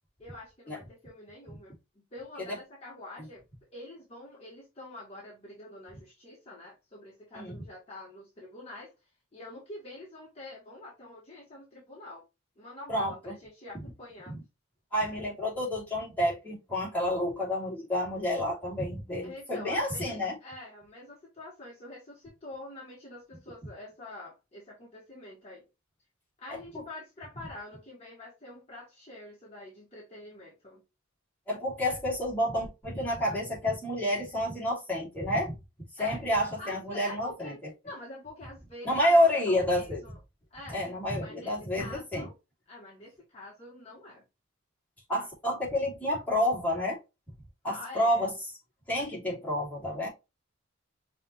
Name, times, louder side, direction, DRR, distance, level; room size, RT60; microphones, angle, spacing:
voice 1, 0.2-3.4 3.7-12.2 12.6-14.3 19.2-25.7 26.4-30.8 36.0-36.2 36.6-37.6 37.8-40.2 40.5-40.9 41.2-42.3 42.7-44.2 47.7-48.3, left 2 dB, 30° left, 1.2 m, -46 dB
voice 2, 12.9-13.3 14.3-14.4 14.9-20.3 26.7-26.8 31.5-35.5 36.0-37.5 38.8-40.0 40.7-42.3 45.1-47.0 47.6-48.3 48.9-50.1, left 1 dB, 5° left, 2.5 m, -29 dB
5.6 x 3.0 x 3.1 m
head